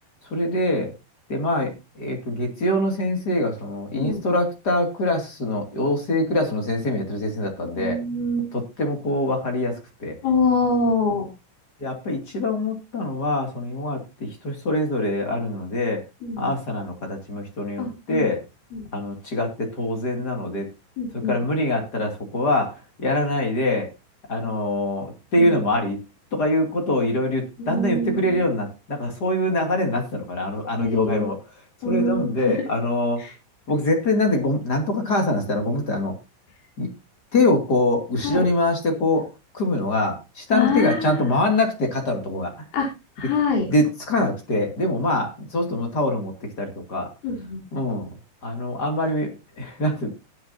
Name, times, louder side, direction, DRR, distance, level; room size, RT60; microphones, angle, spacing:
voice 1, 0.3-0.9 1.3-8.0 8.5-10.2 11.8-16.0 16.4-18.4 18.9-20.7 21.1-23.9 24.3-26.0 26.3-31.4 31.8-33.2 33.7-36.2 36.8-36.9 37.3-39.3 39.5-42.5 43.7-47.1 47.7-48.1 48.4-50.1, left 1 dB, 30° left, 3 dB, 1.9 m, -24 dB
voice 2, 3.9-4.2 7.7-8.5 10.2-11.3 16.2-16.5 17.8-18.3 18.7-18.9 21.0-21.4 25.4-25.6 27.6-28.4 30.8-31.3 31.8-32.6 38.2-38.5 40.5-41.2 42.7-42.9 43.2-43.7 47.2-47.6, left 3 dB, 75° left, 0 dB, 6.0 m, -24 dB
19.5 x 8.1 x 2.8 m, 0.27 s
omnidirectional pair, 5.5 m